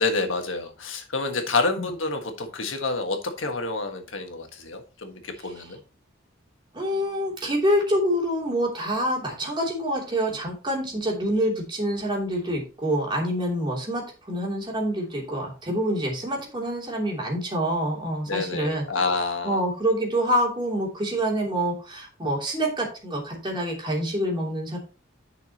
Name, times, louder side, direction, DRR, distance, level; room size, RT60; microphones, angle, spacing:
voice 1, 0.0-5.8 18.3-19.6, left 3 dB, 90° left, 5 dB, 1.5 m, -28 dB
voice 2, 6.7-18.8 19.4-24.8, equal, 25° right, -2 dB, 3.1 m, -26 dB
10.5 x 5.9 x 2.9 m, 0.33 s
head